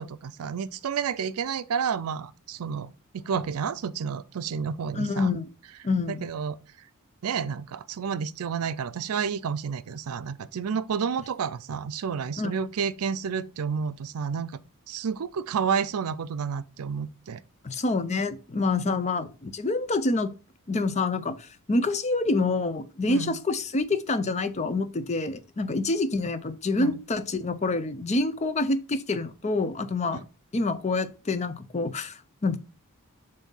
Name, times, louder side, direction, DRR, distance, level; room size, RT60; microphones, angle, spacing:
voice 1, 0.0-5.3 6.1-6.6 7.2-14.5 14.9-17.4 18.9-19.0 23.1-23.4 26.7-27.0 30.1-30.2, right 6 dB, 70° right, 0.4 m, -30 dB
voice 2, 4.9-5.5 5.8-6.3 12.4-12.5 17.6-20.3 20.7-21.4 21.7-30.2 30.5-32.6, left 3 dB, 30° left, 0.5 m, -27 dB
7.1 x 2.7 x 5.5 m
head